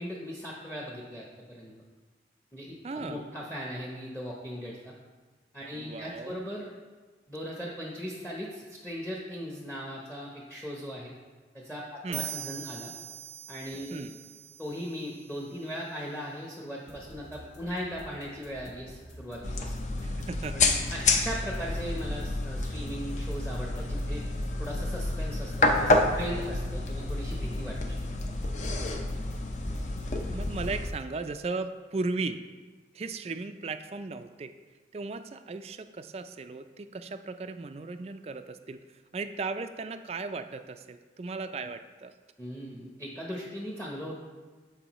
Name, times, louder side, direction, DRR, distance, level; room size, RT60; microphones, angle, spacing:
voice 1, 0.0-1.7 2.5-4.9 5.5-6.7 7.3-11.1 11.5-12.9 13.5-14.2 14.6-19.7 20.5-24.2 24.6-28.0 42.4-44.1, equal, 10° left, -3 dB, 0.8 m, -38 dB
voice 2, 2.8-3.2 5.8-6.4 12.0-12.2 13.9-14.1 20.0-20.6 30.3-32.4 32.9-34.5 34.9-38.8 39.1-42.1, right 3 dB, 35° right, 9 dB, 0.3 m, -36 dB
sound 1, 12.1-15.7, right 13 dB, 90° right, 0.8 m, -42 dB
sound 2, 16.9-31.0, equal, 85° left, 1.9 m, -49 dB
sound 3, 19.4-30.9, left 2 dB, 40° left, 0.6 m, -29 dB
13.0 x 4.7 x 3.0 m, 1.3 s
head